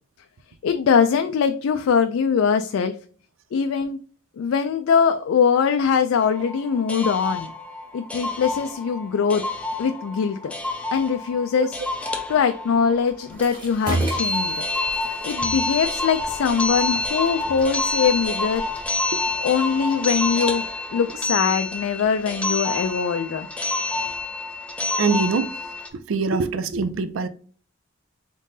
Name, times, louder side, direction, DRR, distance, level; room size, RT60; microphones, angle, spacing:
voice 1, 0.6-3.0 3.5-4.0 4.4-7.5 7.9-9.4 9.8-10.5 10.9-11.8 12.3-14.6 15.2-18.7 19.4-20.7 20.9-23.5, left 6 dB, 80° left, 0.4 m, -22 dB
sound 1, 6.2-25.9, left 2 dB, 5° left, 0.4 m, -28 dB
sound 2, 13.3-19.5, right 1 dB, 20° right, 1.6 m, -33 dB
voice 2, 25.0-25.5 26.1-27.3, right 4 dB, 75° right, 0.4 m, -23 dB
3.7 x 3.7 x 2.7 m
head